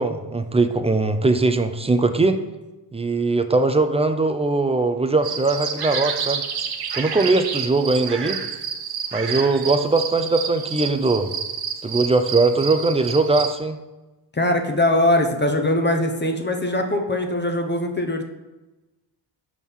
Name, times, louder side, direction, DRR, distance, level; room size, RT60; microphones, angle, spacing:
voice 1, 0.0-2.4 2.9-6.4 6.9-8.4 9.1-11.3 11.8-13.8, right 3 dB, 15° right, 8 dB, 0.3 m, -20 dB
sound 1, 5.2-13.5, right 7 dB, 55° right, 0.6 m, -29 dB
voice 2, 14.3-18.2, left 1 dB, 25° left, 5 dB, 0.6 m, -21 dB
6.2 x 3.7 x 5.4 m, 1.1 s
wide cardioid pair, 120°, 46 cm